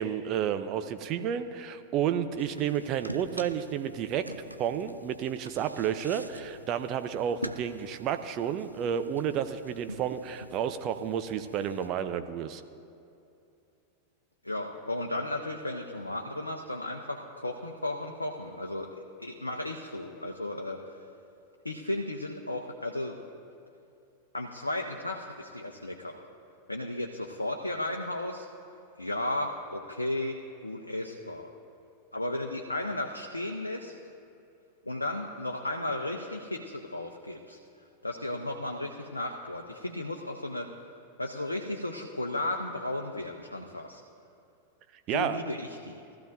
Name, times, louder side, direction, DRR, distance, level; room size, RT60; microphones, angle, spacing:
voice 1, 0.0-4.3 4.6-12.6 45.1-45.4, right 9 dB, 35° right, 10 dB, 0.6 m, -31 dB
sound 1, 2.4-11.9, equal, 90° right, 0.4 m, -45 dB
voice 2, 14.4-18.9 19.2-20.8 21.6-23.2 24.3-26.2 26.7-28.5 29.0-30.4 30.6-31.5 32.1-34.0 34.8-37.6 38.0-40.7 41.2-44.0 45.1-46.0, left 1 dB, 80° left, 2 dB, 0.7 m, -34 dB
18.5 x 13.5 x 2.6 m, 2.6 s
figure-of-eight pair, 90°, 0 cm